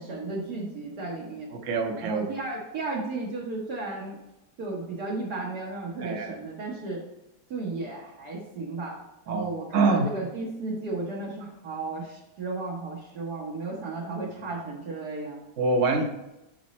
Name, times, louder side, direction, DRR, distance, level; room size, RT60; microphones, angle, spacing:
voice 1, 0.0-1.5 2.0-4.2 4.6-7.0 7.5-8.9 9.2-15.4, right 3 dB, 70° right, -4 dB, 1.7 m, -34 dB
voice 2, 1.5-2.3 6.0-6.4 9.3-10.1 15.6-16.0, right 3 dB, 50° right, 4 dB, 1.2 m, -25 dB
6.2 x 5.1 x 4.1 m, 0.92 s
omnidirectional pair, 1.8 m